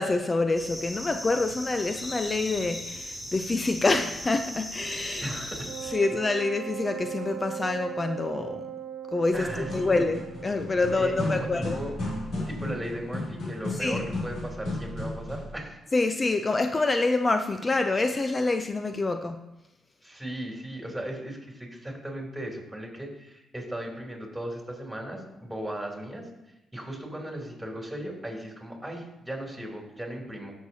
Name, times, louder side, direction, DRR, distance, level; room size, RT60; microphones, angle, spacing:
voice 1, 0.0-5.3 5.9-8.7 9.1-11.8 13.8-14.0 15.9-19.4, left 3 dB, 35° left, 7 dB, 0.5 m, -26 dB
sound 1, 0.6-5.9, equal, 10° left, 2.7 m, -38 dB
voice 2, 5.2-6.0 9.3-9.9 11.0-11.5 11.7-11.9 12.5-15.8 20.0-26.3 26.7-30.5, right 1 dB, 5° right, -1 dB, 3.1 m, -37 dB
Wind instrument woodwind instrument, 5.6-12.3, right 9 dB, 50° right, 1.0 m, -39 dB
sound 2, 9.5-15.6, left 1 dB, 70° left, 2.5 m, -34 dB
14.5 x 6.4 x 2.8 m, 0.93 s
supercardioid pair, 65°, 0 cm